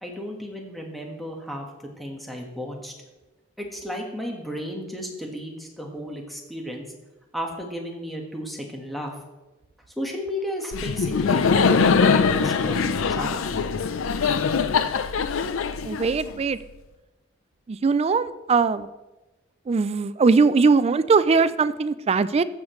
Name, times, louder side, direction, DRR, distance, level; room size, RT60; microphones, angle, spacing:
voice 1, 0.0-1.7 2.0-2.9 3.6-6.9 7.3-9.1 10.0-13.7, equal, ahead, 0 dB, 1.3 m, -34 dB
Laughter, 10.7-16.5, left 5 dB, 80° left, 0.5 m, -22 dB
voice 2, 15.8-16.6 17.7-18.9 19.7-22.4, right 4 dB, 30° right, 14 dB, 0.3 m, -20 dB
14.5 x 6.5 x 3.1 m, 1.1 s
head